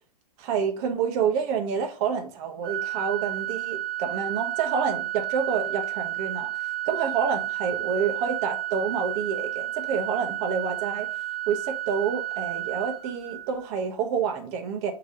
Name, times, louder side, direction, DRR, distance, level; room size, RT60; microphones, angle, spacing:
voice 1, 0.4-6.5 6.9-11.1 11.5-14.9, right 6 dB, 35° right, 0.9 m, -28 dB
Organ, 2.6-13.7, right 14 dB, 15° right, 1.8 m, -32 dB
4.7 x 2.9 x 3.7 m
figure-of-eight pair, 105°, 20 cm